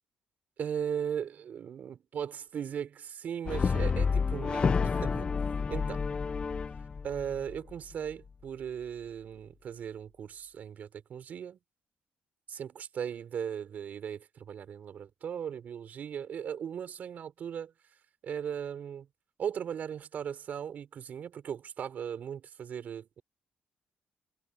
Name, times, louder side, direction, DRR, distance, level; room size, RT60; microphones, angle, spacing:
voice 1, 0.6-5.3 5.7-6.1 7.0-11.6 12.5-17.7 18.2-19.1 19.4-23.2, right 8 dB, 55° right, 4.6 m, -38 dB
Brass instrument, 3.5-7.7, left 5 dB, 30° left, 0.6 m, -29 dB
cardioid pair, 125°, 3 cm